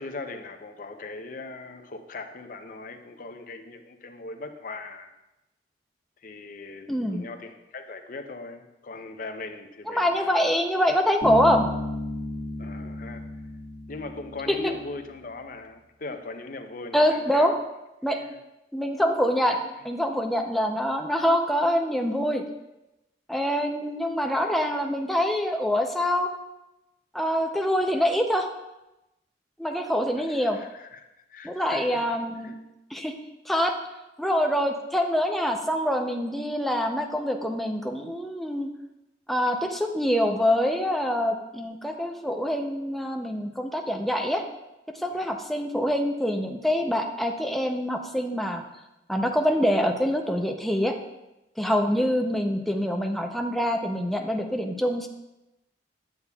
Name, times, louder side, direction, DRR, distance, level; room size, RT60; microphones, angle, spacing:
voice 1, 0.0-5.1 6.2-10.4 12.6-13.2 13.9-17.5 18.2-18.4 19.5-19.6 30.2-31.0 31.3-32.0 32.4-32.5 45.1-45.4 52.0-52.1, left 3 dB, 45° left, 6 dB, 0.6 m, -39 dB
voice 2, 6.9-7.2 9.9-11.7 16.9-17.5 18.0-18.2 18.7-22.4 23.3-26.3 27.1-28.5 29.6-30.6 31.4-32.6 32.9-33.1 33.5-33.7 34.2-38.7 39.3-44.4 45.0-48.6 49.1-51.0 51.6-55.1, equal, ahead, 3 dB, 0.5 m, -25 dB
Bass guitar, 11.2-14.9, left 1 dB, 25° left, 1.7 m, -33 dB
8.8 x 8.1 x 2.3 m, 0.96 s
head